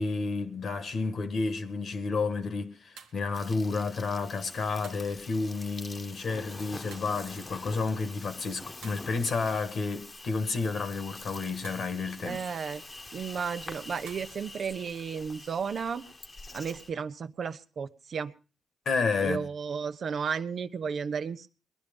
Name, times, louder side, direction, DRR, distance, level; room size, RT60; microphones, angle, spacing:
voice 1, 0.0-12.4 18.8-19.5, left 4 dB, 65° left, 1.6 m, -31 dB
sound 1, 0.9-1.2 3.0-3.3 4.8-5.2 6.9-7.3 8.8-9.3 11.6-12.0 14.1-14.4, right 6 dB, 90° right, 1.2 m, -51 dB
Insect, 3.3-16.9, left 2 dB, 35° left, 1.2 m, -46 dB
voice 2, 12.2-12.8 13.1-16.0 16.5-18.3 19.2-21.5, right 6 dB, 60° right, 0.9 m, -33 dB
20.0 x 11.0 x 5.3 m
supercardioid pair, 55°, 0 cm